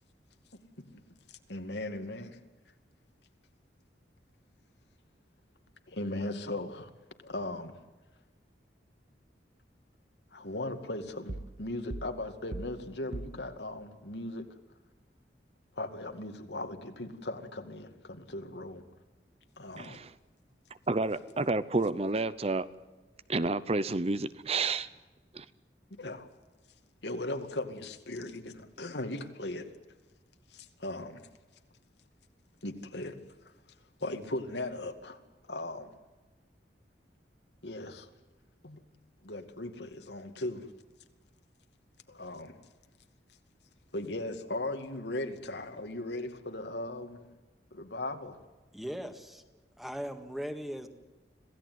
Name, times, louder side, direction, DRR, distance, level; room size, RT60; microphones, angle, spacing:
voice 1, 1.3-2.4 5.9-6.9 7.2-7.8 10.3-14.4 15.8-18.8 19.6-20.0 26.0-26.3 27.0-29.7 30.5-31.2 32.6-33.2 34.0-35.2 35.5-35.9 37.6-38.1 38.6-38.8 39.2-40.7 42.1-42.6 43.9-47.2 47.7-48.4, left 2 dB, 75° left, 7 dB, 2.3 m, -38 dB
sound 1, 11.3-11.6 11.9-13.5, right 2 dB, 60° right, 1.0 m, -40 dB
voice 2, 19.8-20.1 20.9-22.7 23.3-24.9 25.3-25.5, right 3 dB, 35° right, 15 dB, 0.7 m, -30 dB
voice 3, 48.7-49.4 49.8-50.9, equal, ahead, 7 dB, 1.8 m, -38 dB
26.5 x 16.5 x 9.4 m, 1.2 s
head